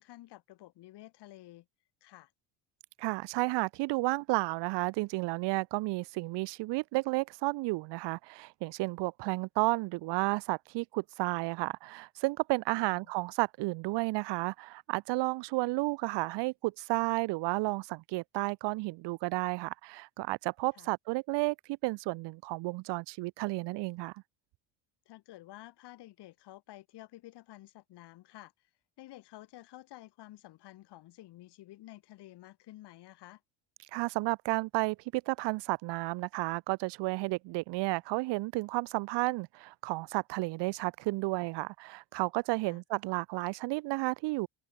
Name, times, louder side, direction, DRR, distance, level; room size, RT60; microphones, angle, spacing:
voice 1, 0.0-1.7 2.0-2.3 12.7-13.1 20.7-20.9 25.1-28.7 29.0-33.4 42.6-42.8, left 16 dB, 60° left, 4.0 m, -51 dB
voice 2, 3.0-24.1 33.9-44.5, right 23 dB, 65° right, 0.8 m, -32 dB
cardioid pair, 135°, 46 cm